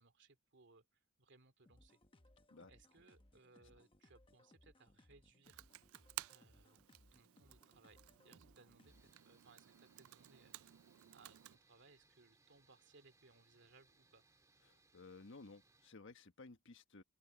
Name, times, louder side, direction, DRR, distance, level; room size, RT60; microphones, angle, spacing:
voice 1, 0.0-2.0 2.7-5.6 6.3-6.8 7.1-10.6 11.1-14.3, right 3 dB, 60° right, 2.5 m, -67 dB
sound 1, 1.7-9.3, left 1 dB, 25° left, 1.0 m, -68 dB
Computer keyboard, 5.4-11.6, right 15 dB, 80° right, 0.4 m, -55 dB
sound 2, 8.9-15.9, right 3 dB, 15° right, 1.8 m, -73 dB
voice 2, 14.6-17.0, left 3 dB, 65° left, 1.4 m, -57 dB
open air
head